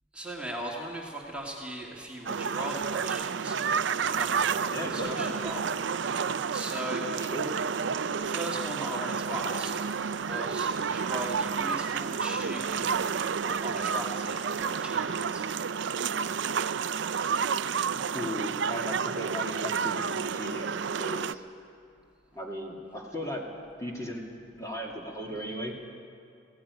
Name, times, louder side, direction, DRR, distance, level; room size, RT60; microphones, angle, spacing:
voice 1, 0.1-3.6 4.0-5.8 6.5-7.1 8.2-9.7 10.2-12.9 13.4-15.4, right 1 dB, 5° right, -3 dB, 2.1 m, -38 dB
sound 1, 2.3-21.3, right 6 dB, 65° right, 0.5 m, -30 dB
voice 2, 4.7-5.3 7.2-7.5 17.9-21.4 22.3-23.5 23.8-24.2 24.6-25.8, equal, 15° left, -2 dB, 2.4 m, -36 dB
18.0 x 16.5 x 9.6 m, 2.5 s
head